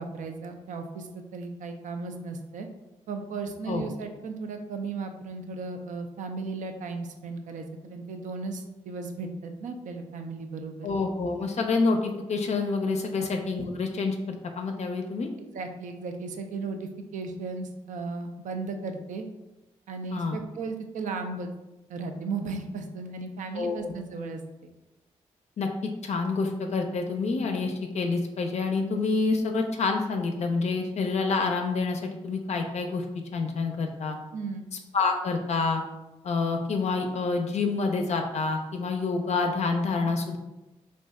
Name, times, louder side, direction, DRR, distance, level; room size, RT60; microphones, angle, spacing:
voice 1, 0.0-2.7 3.1-10.9 13.2-13.3 15.5-19.2 19.9-21.5 21.9-24.7 34.3-34.7, right 4 dB, 70° right, 5 dB, 0.4 m, -36 dB
voice 2, 10.8-15.3 20.1-20.4 23.5-23.9 25.6-33.0 33.3-34.2 34.9-35.8 36.2-40.4, left 4 dB, 60° left, 4 dB, 0.4 m, -27 dB
2.5 x 2.1 x 3.5 m, 1.0 s
supercardioid pair, 45°, 13 cm